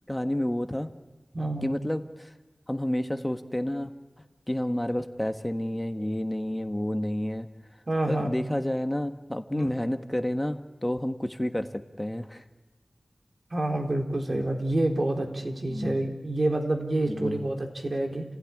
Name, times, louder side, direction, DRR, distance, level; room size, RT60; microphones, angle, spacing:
voice 1, 0.1-0.9 1.6-2.3 2.7-3.9 4.5-7.5 8.1-12.4 14.3-14.4 15.7-16.0 17.0-17.4, left 1 dB, 15° left, 8 dB, 1.6 m, -30 dB
voice 2, 1.3-1.7 7.9-8.3 9.5-9.7 13.5-18.2, right 1 dB, 50° right, 3 dB, 3.9 m, -28 dB
29.5 x 16.0 x 9.9 m, 1.2 s
wide cardioid pair, 70°, 0 cm